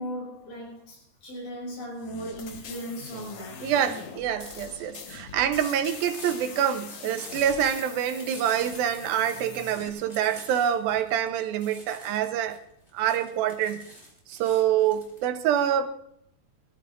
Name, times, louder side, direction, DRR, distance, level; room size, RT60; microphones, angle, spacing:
voice 1, 0.0-3.7, equal, 90° left, 7.8 m, -37 dB
sound 1, 2.0-9.9, left 6 dB, 65° left, 1.5 m, -43 dB
voice 2, 3.6-12.6 12.9-13.8 14.3-16.0, right 9 dB, 80° right, 2.6 m, -26 dB
sound 2, 4.2-15.2, left 1 dB, 20° left, 2.8 m, -47 dB
21.0 x 14.0 x 2.5 m
omnidirectional pair, 4.3 m